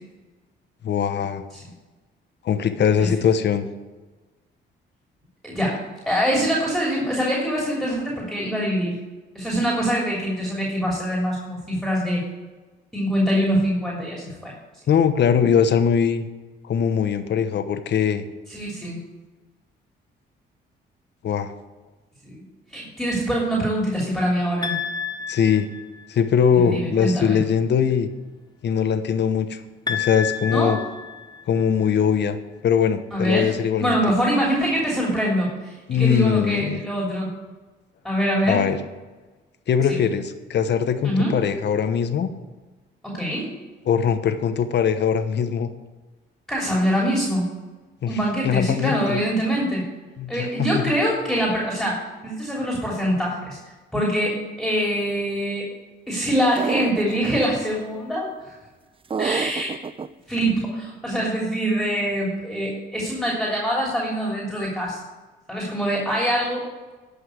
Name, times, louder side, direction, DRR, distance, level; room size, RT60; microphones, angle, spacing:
voice 1, 0.8-1.4 2.4-3.7 14.9-16.2 16.7-18.2 21.2-21.5 25.3-25.7 26.1-28.1 28.6-29.6 29.9-30.8 31.5-32.4 32.6-34.0 35.9-36.8 38.5-38.8 39.7-42.3 43.8-45.7 48.0-48.2 48.4-49.2 50.2-51.0, left 7 dB, 60° left, 10 dB, 1.1 m, -21 dB
voice 2, 5.4-5.8 6.1-8.9 9.3-12.2 12.9-14.6 18.5-19.0 22.2-22.4 22.7-24.8 26.5-27.4 30.5-30.8 33.1-33.5 33.8-37.3 38.0-38.6 39.9-40.0 41.0-41.3 43.0-43.5 46.5-47.5 48.1-49.8 50.3-53.6 53.9-55.6 56.1-58.5 59.2-59.7 60.3-65.0 65.5-66.6, equal, ahead, -4 dB, 3.2 m, -24 dB
sound 1, 24.6-26.3 29.9-31.9, left 6 dB, 20° left, 1.2 m, -31 dB
sound 2, 56.6-57.5 59.1-60.1, right 5 dB, 25° right, 0.5 m, -27 dB
11.5 x 5.6 x 8.1 m, 1.2 s
cardioid pair, 90°, 20 cm